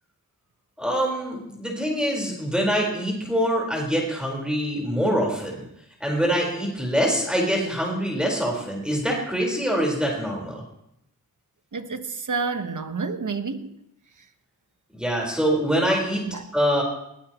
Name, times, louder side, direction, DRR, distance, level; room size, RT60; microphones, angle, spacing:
voice 1, 0.8-5.6 6.0-10.6 14.9-16.2 16.5-16.8, equal, ahead, -1 dB, 4.6 m, -24 dB
voice 2, 11.7-13.7 16.3-16.5, right 4 dB, 60° right, 8 dB, 1.3 m, -29 dB
21.0 x 18.0 x 3.1 m, 0.81 s
cardioid pair, 55°, 35 cm